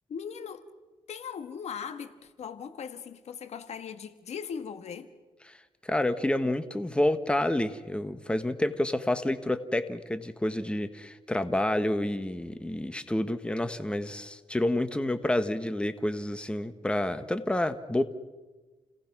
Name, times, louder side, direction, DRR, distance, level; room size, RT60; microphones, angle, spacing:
voice 1, 0.1-0.7 1.1-5.1, left 7 dB, 70° left, 1.6 m, -39 dB
voice 2, 5.8-18.0, left 1 dB, 10° left, 1.3 m, -29 dB
29.5 x 18.0 x 6.1 m
cardioid pair, 85°, 11 cm